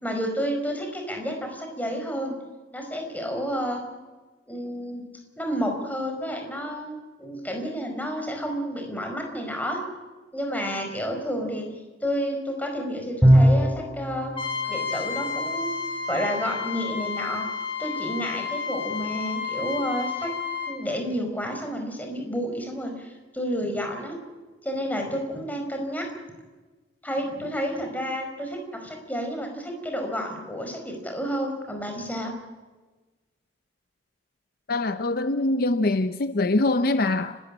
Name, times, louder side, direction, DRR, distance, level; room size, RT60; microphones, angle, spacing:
voice 1, 0.0-2.4 2.7-3.8 4.5-5.0 5.4-9.8 10.3-11.7 12.0-14.3 14.6-15.7 16.1-17.5 17.8-20.3 20.7-24.2 24.6-26.1 27.0-32.3, equal, 10° left, 4.9 m, -30 dB
Bowed string instrument, 13.2-14.1, equal, 5° right, 3.9 m, -17 dB
Trumpet, 14.3-20.8, left 5 dB, 30° left, 3.6 m, -31 dB
voice 2, 34.7-37.4, left 2 dB, 55° left, 0.7 m, -23 dB
30.0 x 13.5 x 8.8 m
head